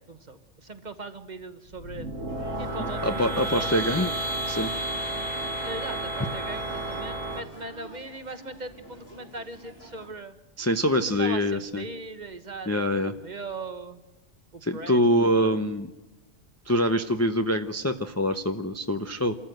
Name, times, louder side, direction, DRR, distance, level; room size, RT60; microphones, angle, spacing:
voice 1, 0.1-2.1 2.6-4.1 5.6-10.4 11.0-12.7 13.0-14.0 14.5-15.7, right 3 dB, 40° right, 9 dB, 1.2 m, -39 dB
sound 1, 1.7-7.4, right 1 dB, 75° right, 2.2 m, -31 dB
sound 2, 2.3-10.1, equal, 55° left, 4.2 m, -49 dB
voice 2, 2.8-4.1 4.5-4.7 10.6-11.8 12.7-13.1 14.6-15.9 16.7-19.3, equal, 15° left, 7 dB, 0.6 m, -25 dB
26.5 x 14.0 x 7.9 m, 1.1 s
omnidirectional pair, 1.2 m